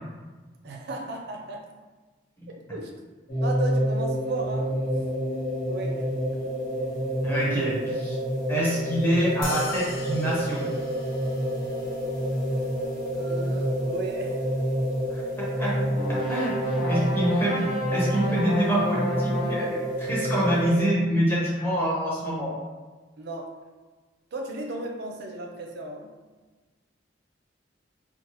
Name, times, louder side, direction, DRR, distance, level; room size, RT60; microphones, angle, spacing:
voice 1, 0.6-1.6 2.5-2.9 3.4-5.0 5.7-6.1 13.1-14.5 16.4-16.5 23.2-23.5 24.3-26.1, right 2 dB, 60° right, 2 dB, 0.4 m, -35 dB
sound 1, 3.3-20.9, equal, 55° left, 1.0 m, -28 dB
voice 2, 7.2-8.2 8.5-10.7 15.1-16.5 16.9-17.6 17.9-22.5, right 1 dB, 10° left, -7 dB, 0.8 m, -26 dB
sound 2, 9.4-12.2, left 4 dB, 85° left, 0.4 m, -40 dB
sound 3, 15.9-19.9, left 1 dB, 30° left, 1.3 m, -33 dB
3.2 x 2.0 x 2.9 m, 1.3 s
head